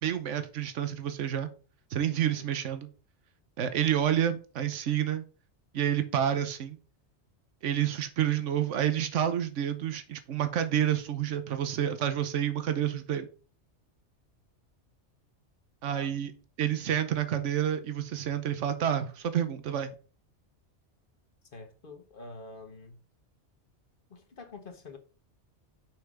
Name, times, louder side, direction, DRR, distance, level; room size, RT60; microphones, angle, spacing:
voice 1, 0.0-1.5 1.9-2.9 3.6-5.2 5.7-6.8 7.6-13.3 15.8-16.3 16.6-19.9, right 10 dB, 85° right, 1.2 m, -29 dB
voice 2, 21.5-23.0 24.1-25.0, left 3 dB, 50° left, 1.4 m, -46 dB
6.1 x 5.7 x 4.9 m
omnidirectional pair, 1.2 m